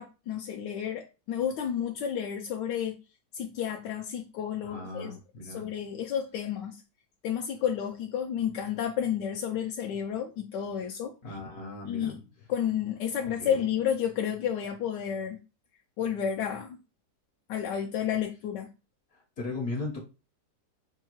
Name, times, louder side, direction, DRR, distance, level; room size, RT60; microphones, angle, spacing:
voice 1, 0.0-3.0 3.3-5.2 5.5-6.8 7.2-11.1 11.9-12.2 12.5-15.4 16.0-16.8 17.5-18.7, left 9 dB, 85° left, 1.2 m, -31 dB
voice 2, 4.6-5.7 11.2-12.2 13.4-13.6 19.1-20.0, left 2 dB, 60° left, 1.3 m, -37 dB
5.4 x 2.4 x 2.9 m
omnidirectional pair, 1.8 m